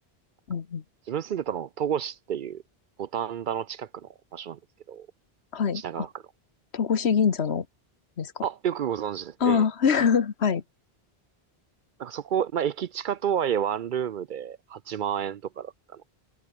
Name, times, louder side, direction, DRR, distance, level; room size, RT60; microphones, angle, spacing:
voice 1, 0.5-0.8 5.5-6.1 6.7-7.7 8.2-8.4 9.4-10.6, left 6 dB, 90° left, 1.5 m, -24 dB
voice 2, 1.1-2.6 3.0-4.6 4.9-5.1 5.7-6.1 8.4-9.7 12.0-16.1, right 9 dB, 60° right, 0.6 m, -30 dB
omnidirectional pair, 1.1 m